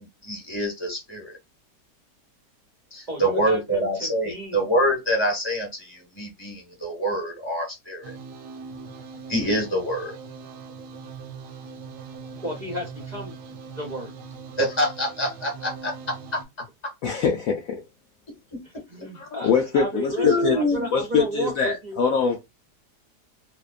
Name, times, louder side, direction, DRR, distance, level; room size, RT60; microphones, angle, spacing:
voice 1, 0.2-1.3 2.9-8.1 9.3-10.1 14.6-15.9 18.5-18.6 20.2-20.9, equal, 20° left, 1.2 m, -25 dB
voice 2, 3.1-4.7 12.4-13.3 13.7-14.1 18.6-22.0, equal, 50° right, 0.5 m, -33 dB
sound 1, 8.0-16.4, right 5 dB, 90° right, 1.2 m, -41 dB
voice 3, 17.0-17.8 19.1-20.6 20.9-22.4, left 6 dB, 70° left, 0.8 m, -23 dB
2.8 x 2.1 x 2.3 m
omnidirectional pair, 1.8 m